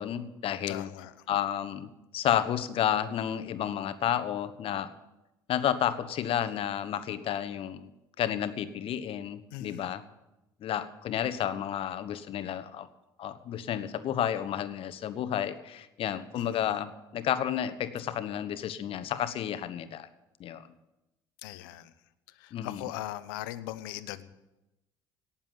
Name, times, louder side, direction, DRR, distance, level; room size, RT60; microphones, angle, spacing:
voice 1, 0.0-0.9 1.3-4.9 5.5-7.9 8.2-10.0 10.6-12.9 13.2-20.1 20.4-20.6 22.5-22.8, left 10 dB, 55° left, 12 dB, 1.2 m, -31 dB
voice 2, 0.7-1.1 9.5-9.9 16.3-16.7 21.4-21.9 22.4-24.3, left 15 dB, 80° left, 14 dB, 0.8 m, -39 dB
18.0 x 7.4 x 8.8 m, 0.96 s
hypercardioid pair, 70°, 11 cm